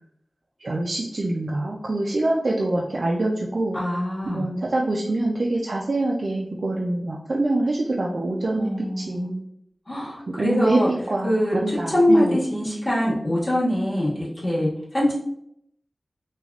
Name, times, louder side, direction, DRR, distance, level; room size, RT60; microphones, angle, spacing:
voice 1, 0.6-3.8 4.3-9.4 10.4-10.8 11.1-11.3 11.6-12.4, right 2 dB, 65° right, -2 dB, 0.3 m, -25 dB
voice 2, 3.7-4.5 8.6-9.2 9.9-10.9 11.2-15.1, left 1 dB, 50° left, -9 dB, 1.3 m, -23 dB
3.3 x 2.3 x 2.3 m, 0.74 s
wide cardioid pair, 55°, 0 cm